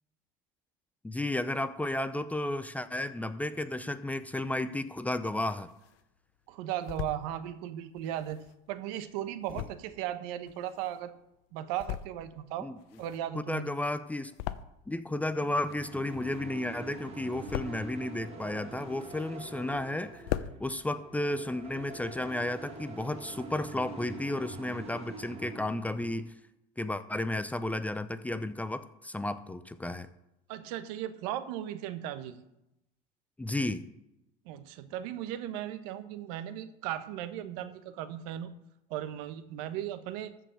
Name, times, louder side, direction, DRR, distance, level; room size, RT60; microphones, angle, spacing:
voice 1, 1.0-5.7 12.6-12.8 13.3-14.3 14.9-26.3 26.8-30.1 33.4-33.9, left 1 dB, 5° left, 12 dB, 0.6 m, -33 dB
sound 1, 5.1-6.0 6.5-7.2 7.9-11.2 11.6-12.4 12.7-15.1 15.4-16.6 17.0-18.0 18.5-19.5 19.9-20.0 20.1-20.6, left 13 dB, 70° left, 0.6 m, -40 dB
voice 2, 6.5-11.1 11.5-12.7 13.0-13.6 30.5-32.4 34.4-38.5 38.9-40.3, right 11 dB, 75° right, 11 dB, 1.1 m, -37 dB
sound 2, 15.1-26.2, right 3 dB, 30° right, 2.2 m, -45 dB
13.5 x 5.2 x 7.6 m, 0.89 s
supercardioid pair, 110°, 20 cm